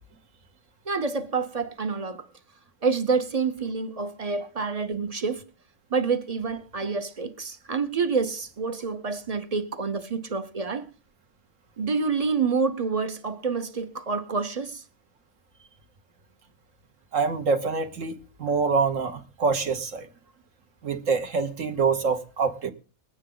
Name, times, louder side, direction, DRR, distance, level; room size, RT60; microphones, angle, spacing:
voice 1, 0.9-2.3 2.8-5.5 5.9-10.9 11.8-14.8, right 4 dB, 35° right, 0.7 m, -28 dB
voice 2, 17.1-20.1 20.8-22.7, right 4 dB, 70° right, 1.6 m, -25 dB
21.5 x 9.1 x 3.8 m
omnidirectional pair, 1.4 m